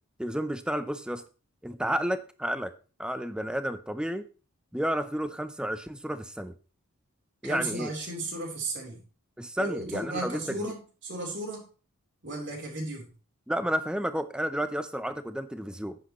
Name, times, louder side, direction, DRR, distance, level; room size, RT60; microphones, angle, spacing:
voice 1, 0.2-1.2 1.6-2.7 3.0-4.2 4.7-6.5 7.4-7.9 9.4-10.7 13.5-16.0, equal, 5° right, 11 dB, 0.6 m, -31 dB
voice 2, 7.4-9.0 9.6-11.7 12.2-13.1, right 2 dB, 55° right, 0 dB, 3.9 m, -35 dB
9.6 x 8.4 x 3.1 m, 0.36 s
head